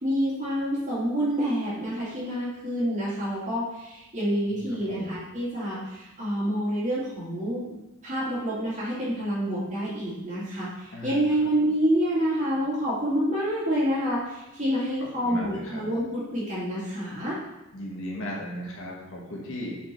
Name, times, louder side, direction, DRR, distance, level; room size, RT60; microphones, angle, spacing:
voice 1, 0.0-7.7 8.0-17.4, equal, 35° right, -8 dB, 2.5 m, -27 dB
voice 2, 4.5-5.1 10.9-11.2 15.0-15.8 17.7-19.7, equal, 65° left, -3 dB, 1.5 m, -37 dB
5.3 x 5.1 x 4.5 m, 0.95 s
head